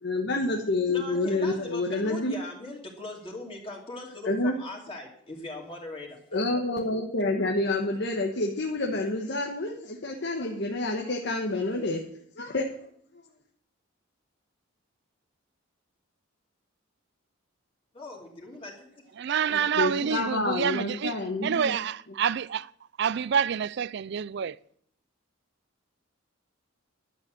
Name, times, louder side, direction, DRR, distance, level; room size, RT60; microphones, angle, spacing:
voice 1, 0.0-2.4 4.2-4.5 6.3-12.0 12.4-12.7 19.5-21.8, left 2 dB, 60° left, 1.3 m, -28 dB
voice 2, 0.9-6.5 17.9-19.1 19.4-19.7, left 2 dB, 25° left, 2.8 m, -40 dB
voice 3, 19.2-22.7 23.0-24.6, right 7 dB, 55° right, 0.4 m, -28 dB
11.5 x 7.6 x 7.7 m
head